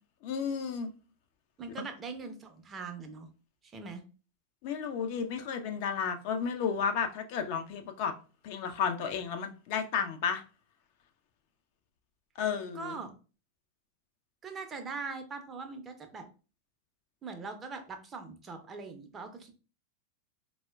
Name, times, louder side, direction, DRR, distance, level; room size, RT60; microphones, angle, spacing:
voice 1, 0.2-0.9 4.6-8.1 8.4-10.4 12.4-13.0, left 6 dB, 45° left, 0.4 m, -32 dB
voice 2, 1.6-3.3 3.6-4.0 12.7-13.1 14.4-16.3 17.2-19.5, right 4 dB, 20° right, 0.5 m, -41 dB
4.1 x 2.0 x 2.2 m
figure-of-eight pair, 90°, 0 cm